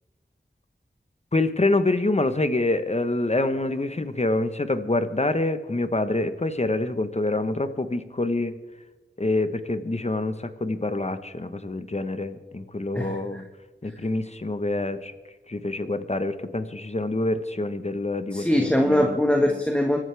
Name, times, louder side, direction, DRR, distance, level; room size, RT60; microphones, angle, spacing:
voice 1, 1.3-8.5 9.2-13.4 13.8-15.1 15.5-19.2, left 2 dB, 35° left, 10 dB, 1.2 m, -26 dB
voice 2, 18.3-20.0, left 1 dB, 5° left, 2 dB, 1.6 m, -21 dB
24.5 x 13.0 x 3.5 m, 1.2 s
wide cardioid pair, 55°, 19 cm